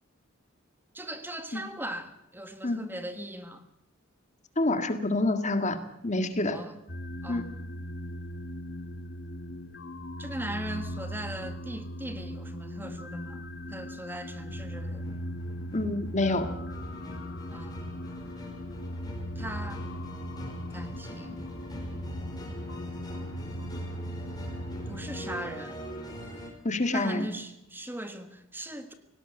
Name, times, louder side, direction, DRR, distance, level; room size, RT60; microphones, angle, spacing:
voice 1, 0.9-3.6 6.5-6.7 7.2-7.4 10.2-13.4 13.7-15.1 17.5-17.8 19.3-19.8 20.7-21.4 24.9-25.8 26.9-28.9, right 1 dB, 10° right, 8 dB, 1.5 m, -38 dB
voice 2, 4.6-6.6 7.3-7.5 15.7-16.5 26.6-27.3, left 2 dB, 35° left, 8 dB, 1.8 m, -27 dB
sound 1, 6.9-25.5, left 1 dB, 55° left, 1.4 m, -39 dB
sound 2, 14.5-26.5, equal, 20° left, 5.1 m, -42 dB
18.0 x 18.0 x 8.1 m, 0.84 s
head